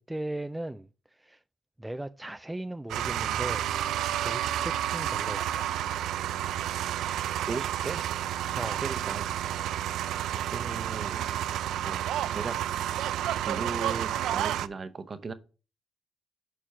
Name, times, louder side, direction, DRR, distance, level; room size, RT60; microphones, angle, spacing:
voice 1, 0.0-1.4 1.8-3.7 4.2-5.7 8.5-8.8, right 1 dB, 10° right, 0.3 m, -37 dB
sound 1, 2.9-14.7, right 11 dB, 80° right, 0.4 m, -30 dB
voice 2, 7.5-8.0 8.8-9.3 10.3-11.2 11.8-12.0 12.3-12.6 13.4-15.3, right 4 dB, 40° right, 0.8 m, -36 dB
6.6 x 4.5 x 5.5 m
cardioid pair, 90°, 0 cm